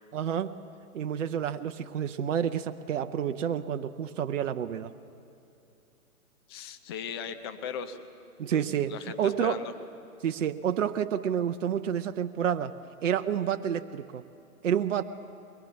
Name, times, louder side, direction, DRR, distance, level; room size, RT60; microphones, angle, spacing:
voice 1, 0.1-0.5 0.9-4.9 8.4-8.9 9.2-9.6 10.2-14.3 14.6-15.0, right 9 dB, 55° right, 9 dB, 0.8 m, -29 dB
voice 2, 6.5-8.0 8.5-8.6 8.9-9.7, left 7 dB, 15° left, 9 dB, 0.5 m, -38 dB
23.0 x 21.5 x 8.1 m, 2.7 s
hypercardioid pair, 135°, 45 cm